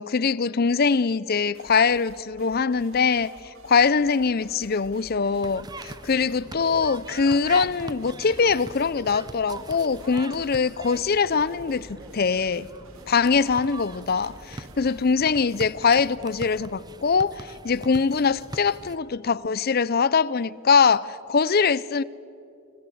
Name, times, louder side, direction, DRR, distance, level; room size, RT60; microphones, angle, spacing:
voice 1, 0.0-3.3 3.6-11.9 12.1-12.7 13.1-22.0, left 5 dB, 45° left, 0.5 m, -22 dB
sound 1, 1.5-15.1, right 2 dB, 65° right, 2.1 m, -52 dB
sound 2, 5.4-19.0, right 2 dB, 20° right, 0.7 m, -41 dB
27.0 x 25.0 x 7.9 m
head